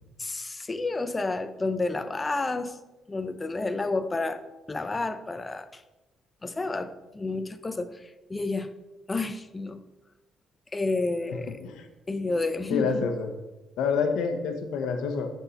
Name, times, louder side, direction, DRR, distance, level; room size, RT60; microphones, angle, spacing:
voice 1, 0.2-2.8 3.1-5.8 6.4-8.7 9.1-9.8 10.7-11.5 12.1-13.0, left 3 dB, 25° left, 11 dB, 0.7 m, -30 dB
voice 2, 12.7-13.3 13.8-15.3, left 5 dB, 90° left, 6 dB, 1.1 m, -27 dB
10.0 x 4.5 x 5.6 m, 1.1 s
cardioid pair, 90°, 0 cm